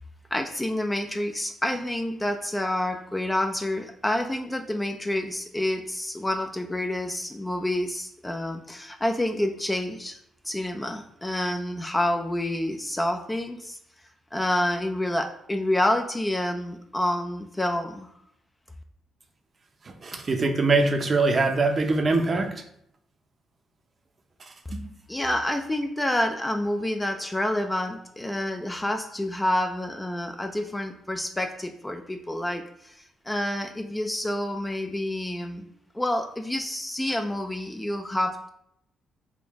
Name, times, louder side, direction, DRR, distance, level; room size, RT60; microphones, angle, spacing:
voice 1, 0.3-10.2 10.4-13.8 14.3-18.1 25.1-33.0 33.3-38.5, left 1 dB, 10° left, 5 dB, 0.4 m, -28 dB
voice 2, 20.0-22.5 24.7-24.8, right 3 dB, 35° right, 5 dB, 0.6 m, -22 dB
3.6 x 2.5 x 3.5 m, 0.73 s
cardioid pair, 90°, 0 cm